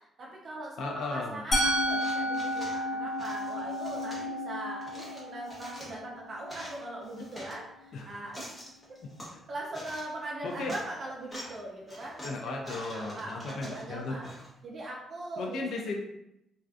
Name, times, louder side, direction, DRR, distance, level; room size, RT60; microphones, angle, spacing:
voice 1, 0.2-8.5 9.5-14.3 14.6-15.7, right 1 dB, 50° right, -3 dB, 0.5 m, -40 dB
voice 2, 0.8-1.4 7.9-8.1 9.3-9.4 10.4-10.7 12.2-14.2 15.4-16.0, left 3 dB, 75° left, 1 dB, 0.3 m, -35 dB
Musical instrument, 1.5-7.4, equal, 45° left, 0.8 m, -32 dB
sound 1, 1.9-2.8 3.2-4.2 4.8-6.0 6.3-7.6 8.1-9.4 9.7-10.2 10.5-10.9 11.2-11.6 11.9-14.5, equal, 15° left, 0.8 m, -46 dB
2.4 x 2.3 x 2.3 m, 0.83 s
cardioid pair, 115°, 0 cm